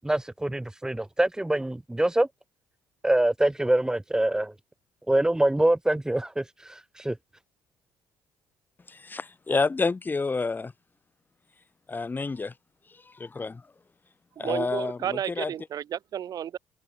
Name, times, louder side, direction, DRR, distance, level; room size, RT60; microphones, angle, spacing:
voice 1, 0.0-2.3 3.0-4.5 5.1-7.2, right 1 dB, 10° right, 1.0 m, -25 dB
voice 2, 8.9-10.7 11.9-12.5 12.9-13.6 14.4-15.5, left 3 dB, 25° left, 2.5 m, -29 dB
voice 3, 14.4-16.6, right 10 dB, 60° right, 1.5 m, -32 dB
supercardioid pair, 70°, 8 cm